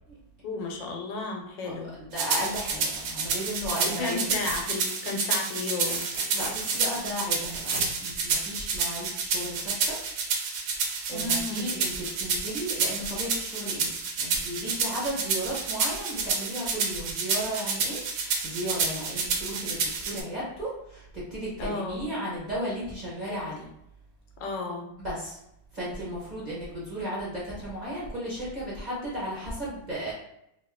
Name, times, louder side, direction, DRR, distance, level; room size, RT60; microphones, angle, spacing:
voice 1, 0.4-1.9 4.0-6.0 11.1-11.8 21.6-22.1 24.4-24.9, left 3 dB, 80° left, 1 dB, 1.4 m, -33 dB
voice 2, 1.6-4.2 6.3-10.0 11.1-23.7 25.0-25.4 25.7-30.1, equal, 30° right, -8 dB, 1.0 m, -35 dB
sound 1, 2.2-20.2, right 5 dB, 80° right, 1.3 m, -29 dB
sound 2, 3.3-3.9 4.1-7.9 9.6-9.7, right 3 dB, 60° right, 1.2 m, -37 dB
2.9 x 2.8 x 3.6 m, 0.80 s
omnidirectional pair, 1.9 m